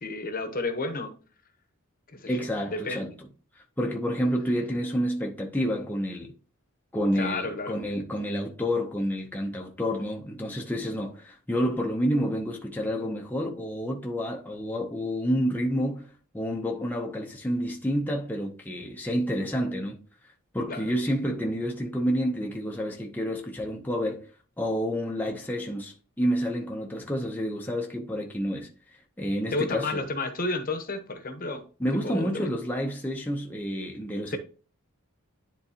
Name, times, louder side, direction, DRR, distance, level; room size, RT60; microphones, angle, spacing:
voice 1, 0.0-1.1 2.1-3.1 7.1-7.8 20.7-20.8 29.5-31.6 31.9-32.5 34.3-34.4, left 2 dB, 40° left, 0.9 m, -31 dB
voice 2, 2.3-3.1 3.6-6.3 6.9-16.1 16.3-20.0 20.5-24.2 24.6-28.7 29.2-30.0 31.8-34.4, equal, 10° left, 0.7 m, -29 dB
10.5 x 3.9 x 2.8 m
head